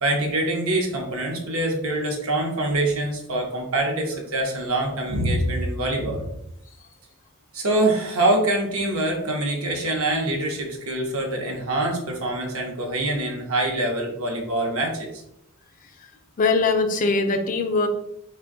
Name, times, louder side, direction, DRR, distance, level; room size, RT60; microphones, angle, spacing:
voice 1, 0.0-6.2 7.5-15.1, right 1 dB, 85° right, 1 dB, 0.7 m, -24 dB
voice 2, 16.4-17.9, left 3 dB, 40° left, 6 dB, 0.4 m, -21 dB
2.5 x 2.2 x 3.7 m, 0.79 s
head